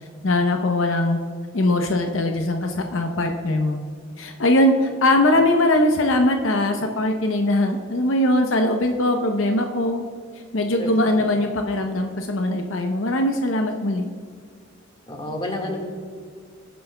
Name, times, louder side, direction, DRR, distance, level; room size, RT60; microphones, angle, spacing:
voice 1, 0.2-1.2 1.5-3.8 4.2-10.0 10.5-14.1, left 1 dB, 75° left, 4 dB, 0.7 m, -21 dB
voice 2, 10.8-11.3 15.1-15.8, left 1 dB, 25° left, 1 dB, 1.7 m, -30 dB
18.0 x 9.4 x 2.2 m, 2.1 s
head